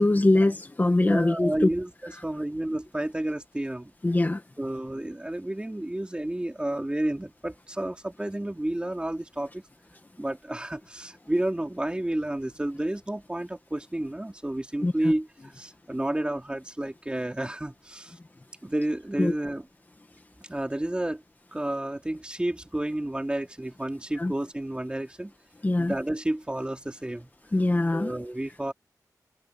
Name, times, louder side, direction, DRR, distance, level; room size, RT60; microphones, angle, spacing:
voice 1, 0.0-1.5 4.0-4.4 14.8-14.9 19.2-19.3 24.2-24.3 25.6-25.9 27.5-28.1, left 2 dB, 25° left, 1.7 m, -22 dB
voice 2, 1.1-3.9 4.6-9.6 10.2-18.1 18.6-19.7 20.5-21.2 21.5-25.3 25.8-27.3 27.9-28.7, right 1 dB, 15° right, 3.5 m, -31 dB
wide cardioid pair, 115°, 7 cm